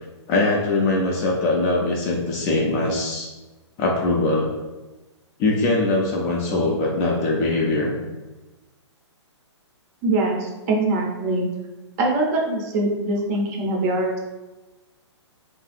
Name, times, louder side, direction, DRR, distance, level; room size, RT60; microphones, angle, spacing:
voice 1, 0.3-3.3 3.8-4.5 5.4-8.0, left 2 dB, 20° left, -2 dB, 0.3 m, -22 dB
voice 2, 10.0-11.5 12.0-14.2, right 2 dB, 35° right, 1 dB, 0.5 m, -23 dB
2.8 x 2.5 x 2.4 m, 1.1 s
hypercardioid pair, 135°, 15 cm